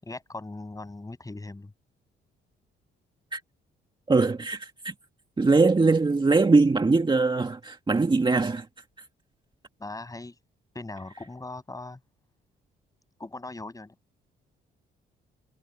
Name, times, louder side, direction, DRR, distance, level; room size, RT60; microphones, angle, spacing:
voice 1, 0.0-1.7 9.8-10.4 10.7-12.0 13.2-13.9, left 2 dB, 15° left, 7.4 m, -39 dB
voice 2, 4.1-4.9 5.4-8.7, right 3 dB, 25° right, 1.9 m, -22 dB
cardioid pair, 90°, 20 cm